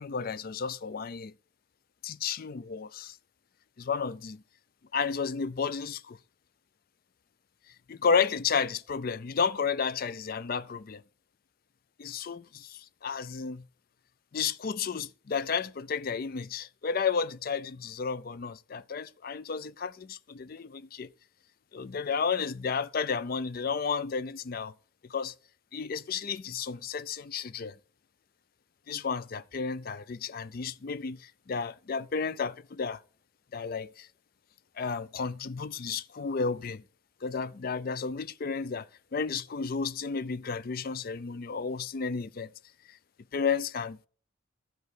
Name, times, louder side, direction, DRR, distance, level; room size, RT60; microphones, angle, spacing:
voice 1, 0.0-1.3 2.0-3.2 3.8-4.4 4.9-6.2 7.9-11.0 12.0-13.6 14.3-21.1 21.7-24.7 25.0-25.3 25.7-27.8 28.9-33.0 33.5-34.1 34.8-36.8 37.2-42.5 42.9-43.0 43.3-44.1, left 5 dB, 45° left, 0.4 m, -32 dB
12.0 x 4.6 x 8.3 m
head